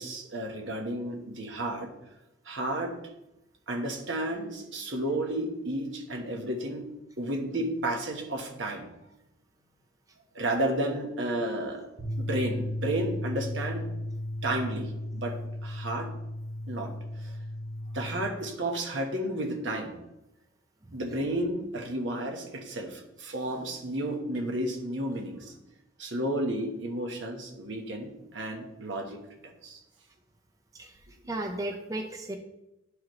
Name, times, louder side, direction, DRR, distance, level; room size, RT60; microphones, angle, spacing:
voice 1, 0.0-1.9 2.4-2.9 3.7-6.8 7.2-8.9 10.3-11.9 12.2-13.9 14.4-16.1 16.7-17.4 17.9-20.0 20.9-25.5 26.0-29.8, right 1 dB, 75° right, 2 dB, 1.3 m, -32 dB
sound 1, 12.0-18.2, left 1 dB, 40° right, 1.8 m, -35 dB
voice 2, 31.3-32.4, right 1 dB, 20° right, 3 dB, 0.5 m, -34 dB
11.5 x 4.9 x 3.1 m, 0.91 s
head